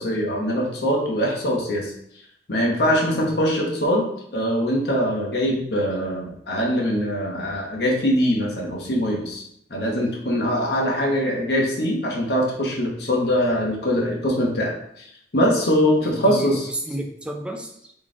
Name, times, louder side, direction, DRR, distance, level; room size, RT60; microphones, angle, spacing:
voice 1, 0.0-1.9 2.5-4.0 4.3-9.4 9.7-15.1 15.3-16.6, equal, 70° left, -1 dB, 1.2 m, -22 dB
voice 2, 16.0-17.9, equal, 5° right, 2 dB, 0.5 m, -32 dB
4.0 x 3.2 x 3.7 m, 0.71 s
head